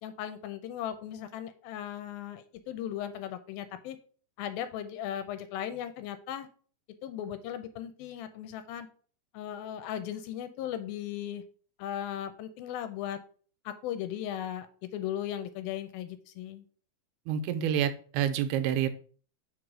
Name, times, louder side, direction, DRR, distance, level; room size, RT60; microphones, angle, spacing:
voice 1, 0.0-4.0 4.4-6.5 7.0-8.9 9.3-11.4 11.8-13.2 13.7-16.6, left 10 dB, 80° left, 10 dB, 2.3 m, -37 dB
voice 2, 17.3-18.9, right 9 dB, 85° right, 10 dB, 2.7 m, -28 dB
5.0 x 4.8 x 6.1 m, 0.42 s
omnidirectional pair, 4.4 m